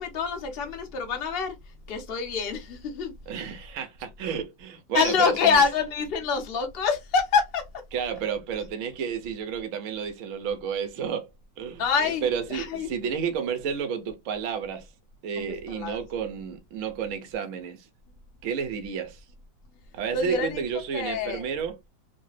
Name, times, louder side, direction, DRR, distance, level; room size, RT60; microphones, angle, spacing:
voice 1, 0.0-1.5 1.9-3.1 4.9-7.6 11.8-12.2 12.5-12.9 15.4-16.0 20.1-20.6 20.9-21.4, left 5 dB, 65° left, 0.6 m, -26 dB
voice 2, 3.3-5.6 7.9-11.3 11.6-11.8 12.2-14.9 15.2-17.9 18.4-19.2 19.9-21.8, right 7 dB, 65° right, 0.8 m, -31 dB
3.2 x 2.2 x 3.1 m
omnidirectional pair, 2.0 m